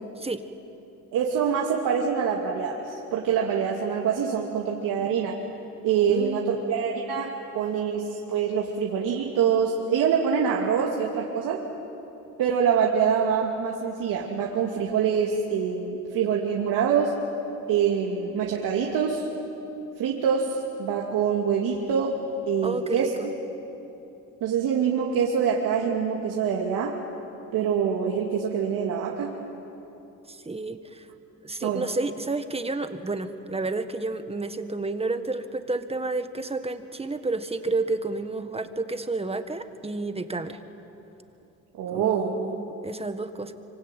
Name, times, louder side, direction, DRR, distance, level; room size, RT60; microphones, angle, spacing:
voice 1, 1.1-5.3 5.8-11.6 12.4-17.1 17.7-19.3 20.0-22.1 22.5-23.1 24.4-27.0 27.5-29.3 31.6-31.9 41.8-42.4, right 7 dB, 75° right, -1 dB, 2.5 m, -25 dB
voice 2, 6.1-6.7 22.6-23.3 30.3-31.1 31.4-40.6 41.9-43.5, right 3 dB, 20° right, 9 dB, 1.7 m, -31 dB
25.0 x 25.0 x 9.2 m, 3.0 s
supercardioid pair, 80°, 32 cm